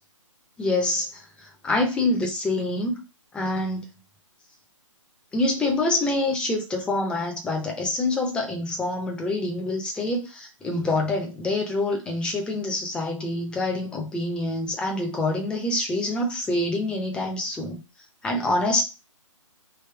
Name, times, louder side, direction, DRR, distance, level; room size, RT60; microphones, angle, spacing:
voice 1, 0.6-3.0 3.3-3.9 5.3-17.8 18.2-18.8, left 2 dB, 5° left, 0.8 m, -26 dB
3.5 x 2.9 x 4.5 m
hypercardioid pair, 150°, 17 cm